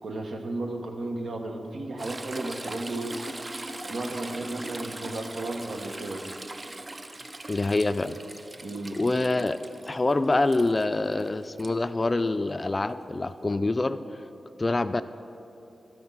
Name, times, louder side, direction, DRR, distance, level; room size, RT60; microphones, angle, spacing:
voice 1, 0.0-3.2 3.9-6.2 8.6-9.0, right 2 dB, 75° right, 3 dB, 1.1 m, -34 dB
Toilet flush / Trickle dribble, 2.0-11.7 13.5-13.6, right 2 dB, 30° right, 0.5 m, -41 dB
voice 2, 7.5-8.2 8.9-9.6 9.9-14.0 14.6-15.0, left 2 dB, 30° left, 12 dB, 0.3 m, -25 dB
11.5 x 6.0 x 7.2 m, 2.9 s
wide cardioid pair, 80°, 0 cm